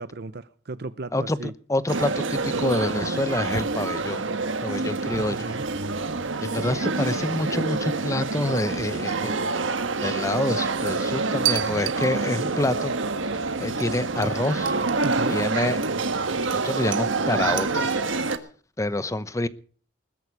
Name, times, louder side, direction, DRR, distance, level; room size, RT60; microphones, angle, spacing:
voice 1, 0.0-1.5 5.2-5.6 15.0-15.4, right 3 dB, 55° right, 0.7 m, -35 dB
voice 2, 1.1-4.3 4.6-5.4 6.4-9.4 10.0-12.9 13.6-14.7 15.3-15.8 16.5-18.0 18.8-19.5, left 1 dB, 15° left, 0.8 m, -27 dB
sound 1, 1.9-18.4, right 3 dB, 90° right, 1.5 m, -27 dB
20.5 x 11.0 x 4.8 m
head